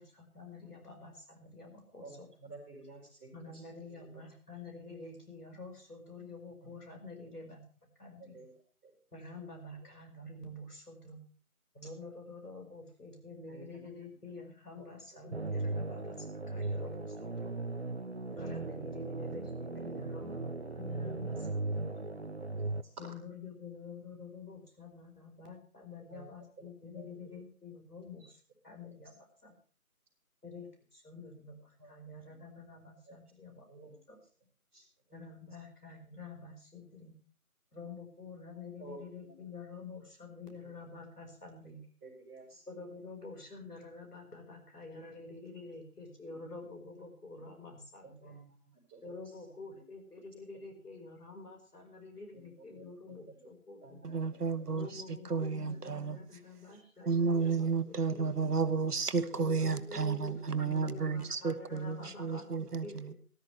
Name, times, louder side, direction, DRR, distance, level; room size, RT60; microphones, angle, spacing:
voice 1, 0.0-2.3 3.3-7.6 8.0-8.4 9.1-11.2 11.7-17.6 18.4-21.9 23.0-29.5 30.4-34.2 35.1-37.1 37.7-41.8 42.7-48.3 49.0-54.0 54.7-58.5 59.3-62.4 62.8-63.1, left 3 dB, 85° left, 5.4 m, -48 dB
voice 2, 2.0-3.6 4.1-4.2 6.4-6.7 7.2-7.3 8.2-8.5 8.8-8.9 13.5-13.9 14.8-14.9 15.1-15.3 15.7-15.8 19.7-20.3 20.6-20.7 21.3-21.4 22.6-23.1 26.1-26.3 26.6-26.7 26.9-27.0 28.2-28.3 31.8-32.4 33.0-33.2 33.7-34.0 34.7-34.8 38.8-39.4 42.0-42.6 46.3-46.4 48.0-49.1 49.7-49.8 52.3-53.5 53.8-54.4 55.7-56.1 56.7-57.1 59.5-59.8 60.9-61.0 63.0-63.1, right 3 dB, 10° right, 4.7 m, -53 dB
sound 1, 15.3-22.8, right 2 dB, 45° right, 0.7 m, -37 dB
voice 3, 54.0-56.2 57.1-63.1, right 5 dB, 85° right, 1.3 m, -32 dB
19.0 x 13.0 x 3.4 m
figure-of-eight pair, 175°, 45 cm